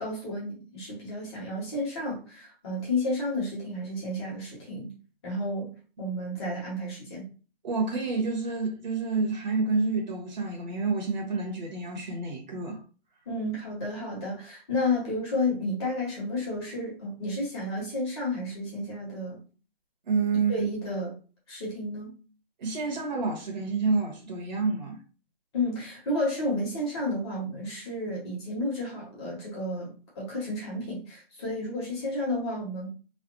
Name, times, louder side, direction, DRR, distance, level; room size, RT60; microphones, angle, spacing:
voice 1, 0.0-4.9 5.2-5.7 6.0-7.3 13.2-19.4 20.5-21.2 21.5-22.2 25.5-32.9, left 1 dB, 25° left, 1.5 m, -31 dB
voice 2, 7.6-12.8 20.1-20.7 22.6-25.0, right 4 dB, 45° right, 1.4 m, -28 dB
3.4 x 2.3 x 4.1 m
hypercardioid pair, 165°, 30 cm